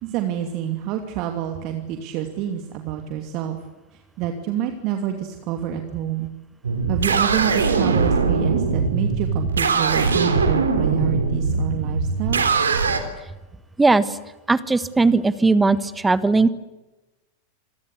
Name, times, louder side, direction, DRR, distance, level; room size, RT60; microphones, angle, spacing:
voice 1, 0.0-3.6 4.2-6.3 6.9-12.5, right 10 dB, 40° right, 5 dB, 2.7 m, -27 dB
sound 1, 6.6-13.0, right 4 dB, 70° right, 3.6 m, -21 dB
voice 2, 13.8-14.2 14.5-16.5, right 3 dB, 10° right, 16 dB, 1.4 m, -18 dB
27.5 x 23.5 x 8.4 m, 1.1 s
figure-of-eight pair, 90°, 0 cm